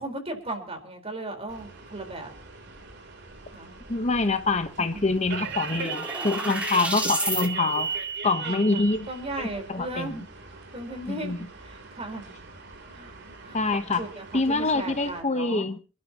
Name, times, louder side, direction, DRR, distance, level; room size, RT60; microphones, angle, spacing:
voice 1, 0.0-2.3 3.5-3.7 6.0-6.5 8.4-10.2 10.7-11.3 11.6-12.3 12.9-13.1 13.4-13.6 14.0-15.7, right 2 dB, 30° right, 4.3 m, -36 dB
sound 1, 1.5-15.2, right 6 dB, 60° right, 3.4 m, -38 dB
voice 2, 3.9-7.9 8.2-9.1 9.4-10.2 11.1-11.4 13.5-14.0 14.3-15.8, left 3 dB, 35° left, 1.0 m, -25 dB
sound 2, 4.6-4.7 5.0-7.5, right 1 dB, 5° right, 2.5 m, -31 dB
28.0 x 12.5 x 3.0 m
head